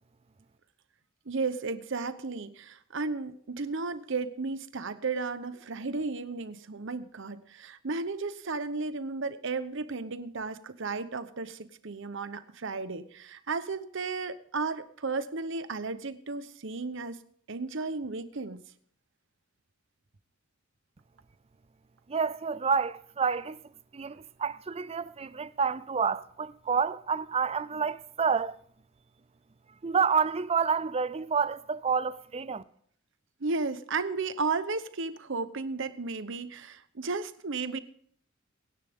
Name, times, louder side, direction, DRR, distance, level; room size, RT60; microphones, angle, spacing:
voice 1, 1.3-17.2 17.5-18.6 33.4-37.8, right 4 dB, 65° right, 0.9 m, -34 dB
voice 2, 22.1-23.6 23.9-28.6 29.8-32.6, right 6 dB, 30° right, 0.5 m, -29 dB
24.0 x 10.5 x 3.7 m
head